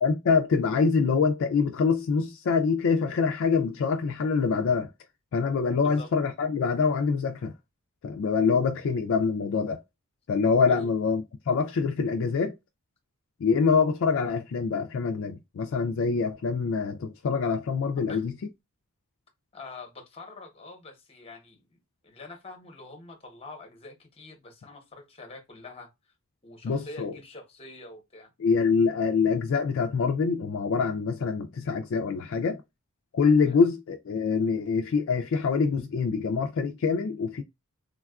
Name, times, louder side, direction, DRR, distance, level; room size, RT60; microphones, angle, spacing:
voice 1, 0.0-4.9 5.3-7.5 8.0-9.8 10.3-12.6 13.4-18.3 26.6-27.1 28.4-32.6 33.1-37.4, left 5 dB, 60° left, 0.4 m, -25 dB
voice 2, 5.7-6.1 10.7-10.9 18.0-18.2 19.5-25.9 26.4-28.3 33.5-33.6, left 3 dB, 25° left, 0.8 m, -45 dB
3.5 x 2.3 x 2.3 m
head